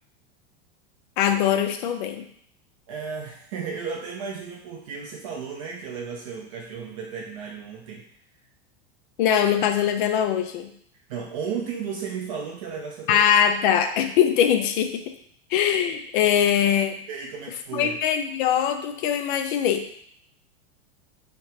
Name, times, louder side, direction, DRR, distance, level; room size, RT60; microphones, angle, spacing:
voice 1, 1.2-2.2 9.2-10.7 13.1-15.0 15.5-17.0 17.7-20.0, left 9 dB, 45° left, 7 dB, 0.5 m, -22 dB
voice 2, 2.9-8.0 11.1-13.2 17.1-18.0, right 6 dB, 30° right, -1 dB, 0.4 m, -34 dB
2.9 x 2.9 x 4.4 m, 0.64 s
supercardioid pair, 165°, 34 cm